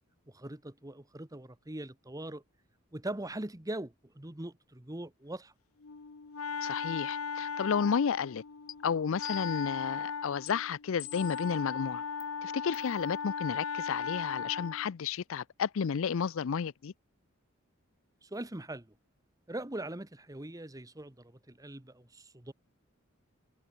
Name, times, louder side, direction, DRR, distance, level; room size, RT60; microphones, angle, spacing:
voice 1, 0.3-2.4 2.9-5.5 18.2-18.9 19.5-22.5, right 1 dB, 15° right, 1.4 m, -41 dB
Wind instrument woodwind instrument, 5.8-14.9, left 6 dB, 90° left, 0.9 m, -37 dB
voice 2, 6.6-8.4 8.8-12.0 12.4-16.9, left 6 dB, 65° left, 0.4 m, -32 dB
sound 1, 8.7-8.8 9.2-9.8 10.5-10.6 11.0-11.5 12.2-12.3 12.7-12.9, left 11 dB, 40° left, 1.2 m, -44 dB
head